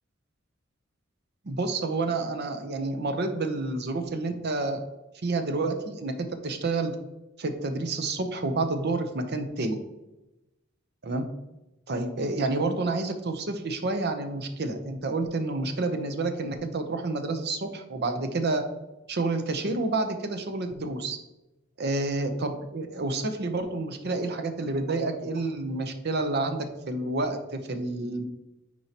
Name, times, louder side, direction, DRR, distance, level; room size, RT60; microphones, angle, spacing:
voice 1, 1.4-4.8 5.2-6.9 7.4-9.8 11.0-11.3 11.9-18.6 19.1-21.2 21.8-28.2, right 2 dB, 50° right, 7 dB, 0.7 m, -29 dB
8.8 x 4.5 x 2.9 m, 1.0 s
head